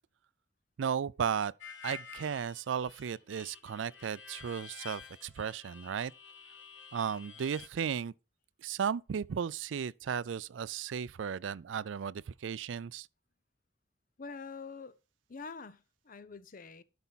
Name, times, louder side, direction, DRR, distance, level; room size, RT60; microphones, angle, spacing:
voice 1, 0.8-1.5 1.8-6.1 6.9-8.1 8.6-13.1, right 7 dB, 80° right, 0.4 m, -35 dB
Harmonica, 1.6-7.7, left 6 dB, 85° left, 1.3 m, -49 dB
voice 2, 14.2-15.0 15.3-16.8, left 4 dB, 45° left, 0.7 m, -45 dB
12.0 x 5.7 x 4.0 m
head